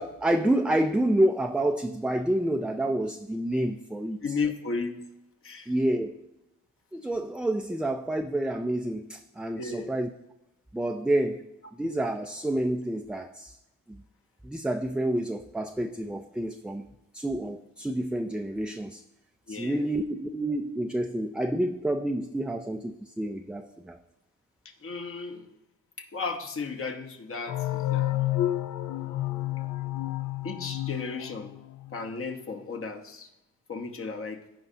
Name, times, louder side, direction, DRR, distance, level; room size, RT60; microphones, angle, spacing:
voice 1, 0.0-4.2 5.7-6.1 6.9-10.1 10.7-11.4 11.8-13.6 13.9-14.0 14.4-19.0 19.5-24.0, right 1 dB, 5° right, 5 dB, 0.3 m, -28 dB
voice 2, 4.2-5.0 5.4-5.7 9.6-9.9 19.5-19.8 24.6-25.5 26.0-28.2 30.4-31.5 31.9-33.3 33.7-34.4, left 4 dB, 45° left, 6 dB, 1.1 m, -34 dB
sound 1, 27.5-32.0, left 14 dB, 85° left, 0.6 m, -30 dB
15.0 x 5.1 x 2.8 m, 0.90 s
cardioid pair, 90°, 30 cm